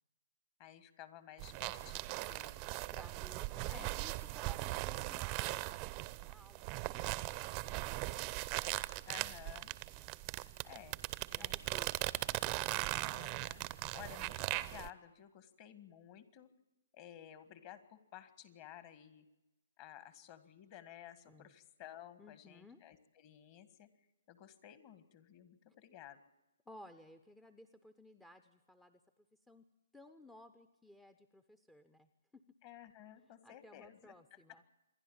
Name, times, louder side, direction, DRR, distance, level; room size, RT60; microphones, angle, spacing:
voice 1, 0.6-2.7 3.7-4.0 9.1-9.8 10.6-11.0 11.3-11.7 13.1-13.6 13.9-16.5 16.9-19.3 19.8-23.9 24.3-26.2 32.6-34.1, left 11 dB, 35° left, 12 dB, 1.8 m, -54 dB
sound 1, 1.4-14.9, right 20 dB, 30° right, 0.7 m, -39 dB
voice 2, 2.9-8.2 9.9-10.1 11.3-12.4 21.3-21.5 22.2-22.8 26.7-29.0 29.5-29.6 29.9-32.4 33.2-34.6, left 1 dB, 5° left, 10 dB, 0.7 m, -58 dB
27.0 x 11.0 x 8.8 m, 0.98 s
figure-of-eight pair, 130°, 0 cm